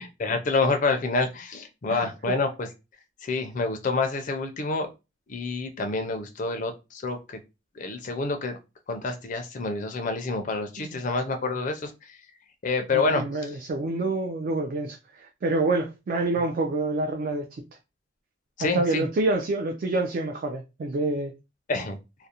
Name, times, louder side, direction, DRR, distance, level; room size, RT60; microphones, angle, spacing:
voice 1, 0.0-2.7 3.2-4.9 5.3-7.2 7.8-8.6 8.9-12.2 12.6-13.2 18.6-19.1 21.7-22.0, left 3 dB, 40° left, 0.4 m, -27 dB
voice 2, 12.9-17.6 18.6-21.3, right 2 dB, 45° right, 0.3 m, -27 dB
2.4 x 2.0 x 2.7 m
head